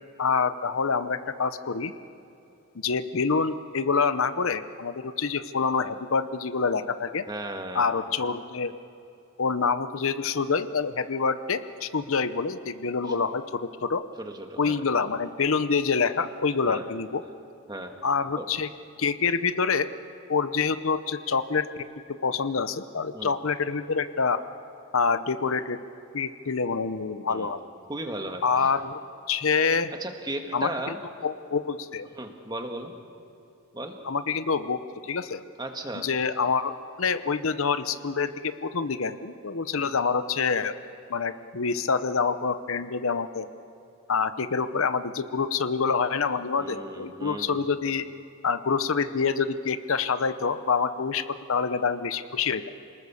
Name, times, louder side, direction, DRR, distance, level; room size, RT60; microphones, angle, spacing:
voice 1, 0.2-1.9 2.7-7.2 7.7-8.7 9.4-14.0 14.6-17.2 18.0-18.7 19.0-19.9 20.3-21.9 22.2-24.4 24.9-25.8 26.1-27.6 28.4-29.0 29.3-29.9 30.5-30.7 31.2-32.1 34.0-35.4 36.0-40.8 41.1-43.5 44.1-48.1 48.4-52.6, left 5 dB, 75° left, 12 dB, 0.8 m, -26 dB
voice 2, 7.3-7.9 13.1-13.2 14.2-14.8 16.7-16.8 17.7-17.9 18.4-18.5 23.1-23.3 27.3-27.5 27.9-28.7 30.0-31.0 32.1-32.9 33.7-33.9 35.6-36.1 39.8-39.9 46.6-47.6, right 1 dB, 20° right, 4 dB, 1.7 m, -36 dB
28.0 x 19.5 x 7.0 m, 2.7 s
head